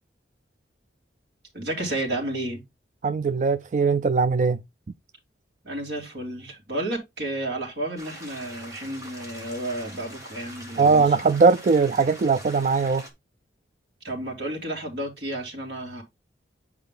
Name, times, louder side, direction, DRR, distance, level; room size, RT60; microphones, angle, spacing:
voice 1, 1.5-2.6 5.6-11.1 14.0-16.0, right 1 dB, 65° right, 3.3 m, -31 dB
voice 2, 3.0-4.6 10.8-13.0, right 4 dB, 45° right, 0.3 m, -20 dB
sound 1, 8.0-13.1, equal, 20° right, 2.3 m, -43 dB
9.0 x 4.7 x 3.7 m
head